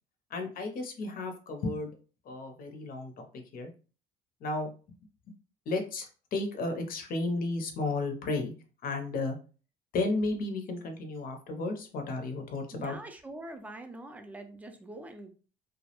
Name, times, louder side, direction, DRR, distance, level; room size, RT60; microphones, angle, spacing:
voice 1, 0.3-1.9 2.2-3.7 4.4-4.7 5.7-8.5 8.8-9.4 9.9-13.0, left 2 dB, 60° left, 5 dB, 0.6 m, -33 dB
voice 2, 12.7-15.3, right 2 dB, 10° right, 6 dB, 0.4 m, -44 dB
2.2 x 2.0 x 2.9 m, 0.36 s
cardioid pair, 110°, 17 cm